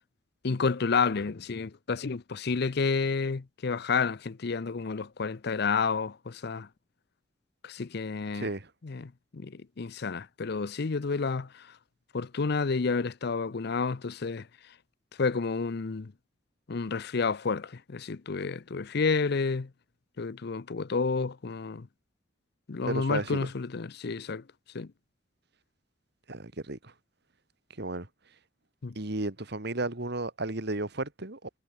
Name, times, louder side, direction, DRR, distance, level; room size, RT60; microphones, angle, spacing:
voice 1, 0.4-6.7 7.6-8.5 8.8-11.7 12.1-14.5 15.2-16.1 16.7-19.7 20.2-21.9 22.7-24.4 24.7-24.9 28.8-28.9, left 4 dB, 60° left, 0.6 m, -30 dB
voice 2, 8.3-8.7 22.9-23.5 26.3-26.9 27.8-28.1 29.0-31.5, right 2 dB, 60° right, 2.2 m, -33 dB
head